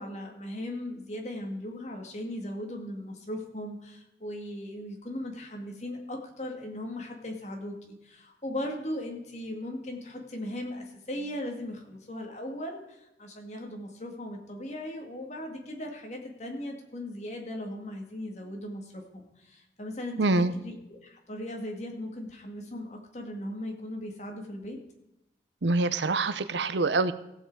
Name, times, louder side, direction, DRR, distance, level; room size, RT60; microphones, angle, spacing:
voice 1, 0.0-12.8 13.2-20.2 20.6-24.8, left 1 dB, 40° left, 2 dB, 2.1 m, -38 dB
voice 2, 20.2-20.5 25.6-27.1, right 3 dB, 80° right, 14 dB, 0.7 m, -25 dB
16.0 x 7.7 x 4.7 m, 0.88 s
head